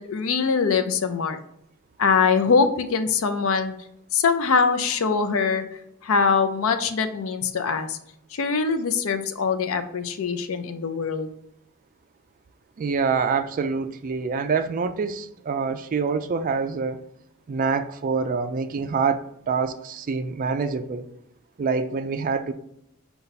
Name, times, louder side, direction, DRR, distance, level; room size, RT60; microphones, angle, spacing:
voice 1, 0.0-1.4 2.0-3.7 4.1-5.6 6.0-8.0 8.3-11.3, left 5 dB, 65° left, 8 dB, 0.5 m, -23 dB
voice 2, 12.8-17.0 17.5-21.1 21.6-22.5, right 5 dB, 40° right, 9 dB, 0.3 m, -26 dB
5.2 x 2.3 x 4.0 m, 0.77 s
head